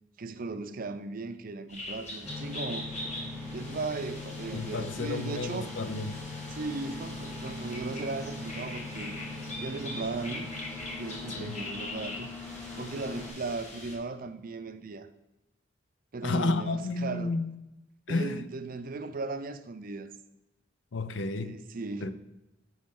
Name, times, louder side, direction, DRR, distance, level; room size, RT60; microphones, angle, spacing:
voice 1, 0.2-2.9 3.5-5.7 6.5-9.2 9.6-10.5 10.9-12.3 12.8-15.1 16.1-17.3 18.1-20.1 21.4-22.1, right 3 dB, 50° right, 0.5 m, -37 dB
sound 1, 1.7-14.0, left 1 dB, 40° left, 1.6 m, -42 dB
sound 2, 2.3-13.3, left 3 dB, 10° left, 1.4 m, -41 dB
voice 2, 4.5-6.2 11.3-11.6 16.2-17.5 18.1-18.4 20.9-21.6 22.0-22.1, left 3 dB, 85° left, 0.5 m, -31 dB
9.3 x 6.2 x 3.7 m
head